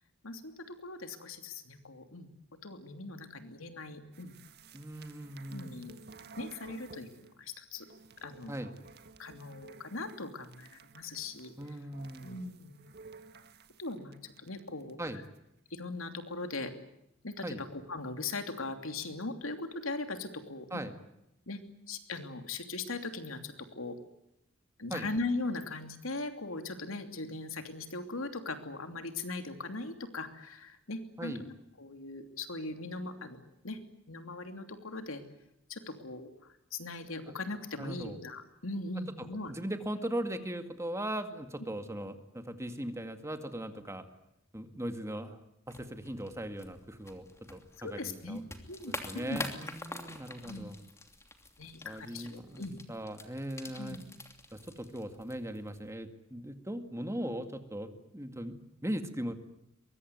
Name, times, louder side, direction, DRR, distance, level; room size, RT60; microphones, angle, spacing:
voice 1, 0.2-2.3 2.6-4.3 5.5-5.9 6.4-7.9 8.2-8.5 9.2-11.5 12.2-12.8 13.8-15.2 15.7-16.7 17.2-20.8 21.5-21.6 21.9-24.0 24.8-33.8 34.1-35.2 35.7-39.5 47.8-48.4 48.7-49.4 50.4-50.7 51.6-52.8 53.8-54.0, left 3 dB, 85° left, 7 dB, 3.0 m, -40 dB
sound 1, 4.1-7.4 7.7-15.4, right 4 dB, 55° right, 1.6 m, -54 dB
voice 2, 4.7-5.8 8.5-8.7 11.6-12.4 15.0-15.2 17.4-17.6 20.7-20.9 24.9-25.1 31.2-31.4 37.8-38.2 39.2-44.1 44.5-45.4 45.7-48.4 48.9-50.7 51.8-54.0 54.5-59.3, right 1 dB, 15° right, 8 dB, 2.1 m, -39 dB
sound 2, 45.7-55.9, left 2 dB, 15° left, 2.8 m, -46 dB
23.5 x 22.0 x 9.6 m, 0.82 s
head